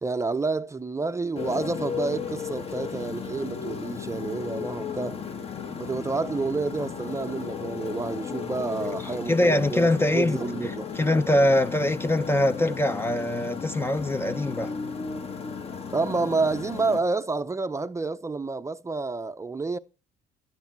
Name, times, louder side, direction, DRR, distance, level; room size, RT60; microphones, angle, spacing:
voice 1, 0.0-5.2 5.8-10.9 15.9-19.8, right 3 dB, 15° right, 0.7 m, -29 dB
Motorcycle, 1.3-17.0, left 6 dB, 35° left, 1.2 m, -35 dB
voice 2, 9.0-14.8, left 1 dB, 15° left, 0.7 m, -23 dB
13.0 x 9.5 x 4.5 m
cardioid pair, 110°, 17 cm